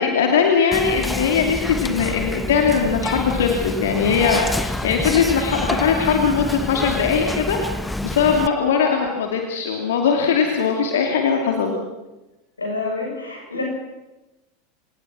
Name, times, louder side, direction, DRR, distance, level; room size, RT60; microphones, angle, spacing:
voice 1, 0.0-7.6 8.0-11.8, left 6 dB, 65° left, 2 dB, 2.6 m, -20 dB
Whispering, 0.7-8.5, left 1 dB, 5° left, 1.1 m, -27 dB
voice 2, 12.6-13.6, left 3 dB, 80° left, 0 dB, 7.6 m, -27 dB
27.5 x 19.0 x 6.2 m, 1.0 s
figure-of-eight pair, 85°, 0 cm